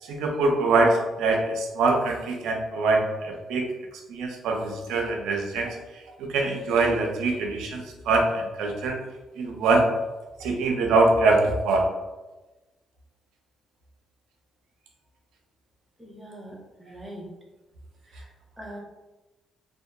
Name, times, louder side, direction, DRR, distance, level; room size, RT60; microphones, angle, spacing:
voice 1, 0.0-3.7 4.1-9.0 9.4-9.9 10.4-11.8, right 3 dB, 90° right, 1 dB, 0.4 m, -24 dB
voice 2, 16.0-17.3 18.0-18.3 18.6-18.8, right 1 dB, 5° right, -3 dB, 0.7 m, -42 dB
2.6 x 2.1 x 2.2 m, 1.1 s
cardioid pair, 90°, 0 cm